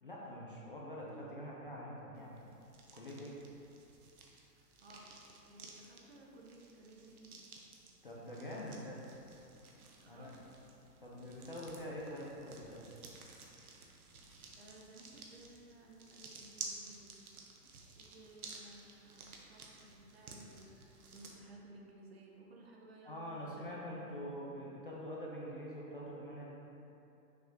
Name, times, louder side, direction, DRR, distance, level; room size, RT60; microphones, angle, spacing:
voice 1, 0.0-2.5 2.9-3.4 8.0-9.0 10.1-10.3 11.0-12.8 23.0-26.5, equal, 35° left, -5 dB, 0.4 m, -45 dB
sound 1, 2.2-21.3, right 4 dB, 60° right, 1.0 m, -54 dB
voice 2, 4.6-5.1 5.5-7.4 10.0-10.5 14.6-17.1 18.0-23.8, right 1 dB, 40° right, -1 dB, 0.7 m, -57 dB
6.5 x 6.1 x 2.7 m, 2.8 s
hypercardioid pair, 170°, 49 cm